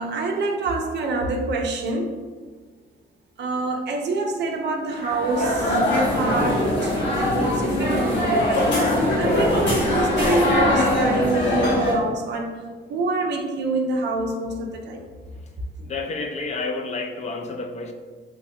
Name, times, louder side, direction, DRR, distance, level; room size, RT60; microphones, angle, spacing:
voice 1, 0.0-2.1 3.4-5.8 6.2-12.6 12.9-15.1, right 2 dB, 60° right, 3 dB, 0.4 m, -26 dB
sound 1, 4.9-11.9, left 1 dB, 65° left, 0.9 m, -21 dB
voice 2, 15.8-17.9, left 3 dB, 35° left, 4 dB, 0.4 m, -30 dB
3.1 x 2.5 x 2.6 m, 1.4 s
cardioid pair, 90°, 20 cm